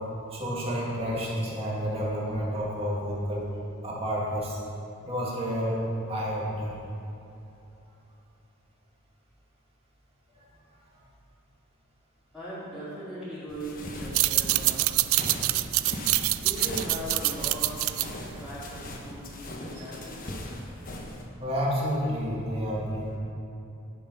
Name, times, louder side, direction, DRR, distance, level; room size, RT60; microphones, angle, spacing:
voice 1, 0.3-3.4 3.8-4.6 5.0-5.8 6.1-6.8 19.8-19.9 21.4-23.2, equal, 30° right, -5 dB, 2.2 m, -30 dB
voice 2, 12.3-15.1 16.3-17.9 18.3-20.4, right 1 dB, ahead, -13 dB, 2.4 m, -39 dB
sound 1, 13.5-21.2, left 1 dB, 40° left, 1.1 m, -39 dB
sound 2, 14.0-19.2, right 18 dB, 75° right, 0.3 m, -26 dB
11.5 x 6.7 x 5.5 m, 2.9 s
head